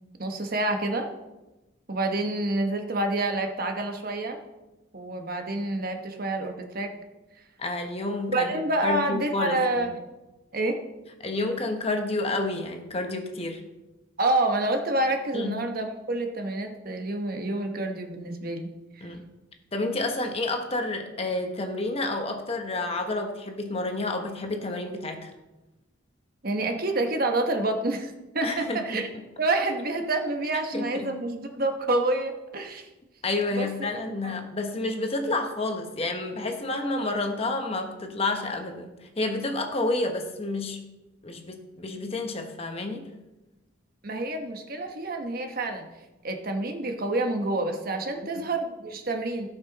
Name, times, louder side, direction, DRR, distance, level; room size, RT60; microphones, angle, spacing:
voice 1, 0.2-1.1 1.9-4.4 4.9-6.9 8.3-9.9 10.5-10.8 14.2-18.7 18.9-19.1 26.4-29.1 29.4-32.9 33.5-33.7 34.2-34.4 44.0-45.9 46.2-49.5, right 2 dB, 50° right, 4 dB, 1.1 m, -28 dB
voice 2, 7.6-8.5 8.8-9.9 11.2-13.6 15.3-15.6 19.0-19.2 19.7-25.3 28.4-29.0 30.7-31.1 33.2-40.8 41.2-43.1, left 2 dB, 30° left, 4 dB, 1.0 m, -30 dB
16.5 x 5.6 x 4.1 m, 1.0 s
head